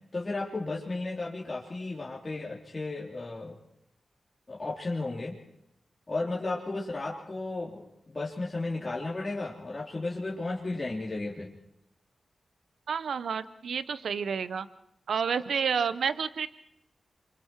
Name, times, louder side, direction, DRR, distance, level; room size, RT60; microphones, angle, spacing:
voice 1, 0.1-3.5 4.5-5.4 6.1-11.5, left 2 dB, 40° left, -4 dB, 3.3 m, -34 dB
voice 2, 12.9-14.7 15.1-16.5, right 6 dB, 80° right, 14 dB, 0.8 m, -30 dB
28.0 x 24.5 x 4.6 m, 0.76 s
cardioid pair, 45°, 0 cm